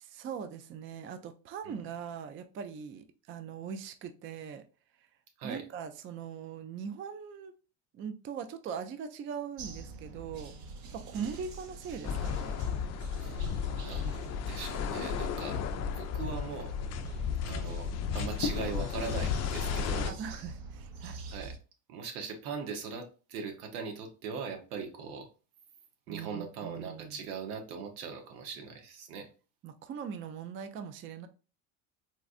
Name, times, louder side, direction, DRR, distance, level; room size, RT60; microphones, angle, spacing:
voice 1, 0.1-4.6 5.4-7.5 7.9-10.5 10.9-12.6 15.7-16.1 20.0-21.2 26.1-27.2 29.6-31.3, right 7 dB, 30° right, 0.4 m, -41 dB
sound 1, 9.6-21.6, right 3 dB, 55° right, 0.8 m, -45 dB
voice 2, 11.1-11.4 13.0-13.4 13.8-15.6 15.9-16.7 17.4-20.2 21.3-21.5 21.9-25.3 26.1-29.3, right 5 dB, 80° right, 1.0 m, -40 dB
sound 2, 12.0-20.1, left 7 dB, 40° left, 0.4 m, -34 dB
4.2 x 2.4 x 2.4 m
hypercardioid pair, 85°, 43 cm